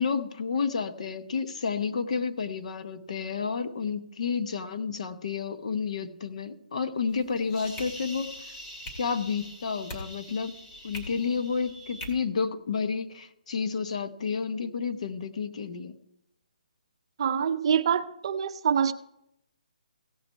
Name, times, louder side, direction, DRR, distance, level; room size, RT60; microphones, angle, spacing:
voice 1, 0.0-8.5 9.0-10.5 10.8-16.0, left 5 dB, 50° left, 1.0 m, -30 dB
sound 1, 7.1-12.1, equal, 20° left, 2.4 m, -43 dB
voice 2, 17.2-18.9, right 7 dB, 40° right, 0.6 m, -25 dB
16.5 x 6.0 x 4.6 m
hypercardioid pair, 165°, 4 cm